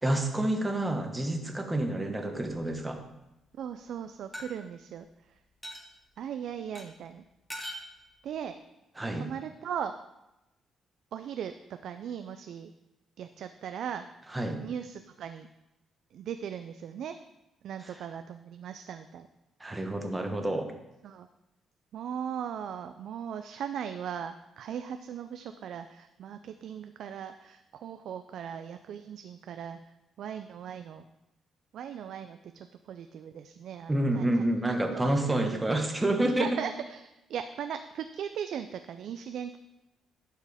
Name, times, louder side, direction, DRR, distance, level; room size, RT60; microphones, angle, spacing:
voice 1, 0.0-3.0 9.0-9.3 14.3-14.6 19.6-20.7 33.9-36.5, right 1 dB, 15° right, 4 dB, 1.1 m, -28 dB
Wine Glasses on contact (Clink), 2.5-3.0 4.3-4.5 5.6-5.9 6.7-6.8 7.5-7.9, equal, 5° left, 1.2 m, -41 dB
voice 2, 3.6-5.4 6.2-7.2 8.2-8.6 9.1-9.9 11.1-11.5 11.8-12.7 13.2-14.1 14.6-15.5 16.1-17.1 17.6-19.3 21.0-21.3 21.9-29.8 30.2-31.1 31.7-34.4 34.7-35.7 36.4-39.6, right 8 dB, 70° right, 8 dB, 0.3 m, -38 dB
11.5 x 4.5 x 3.5 m, 0.94 s
cardioid pair, 90°, 0 cm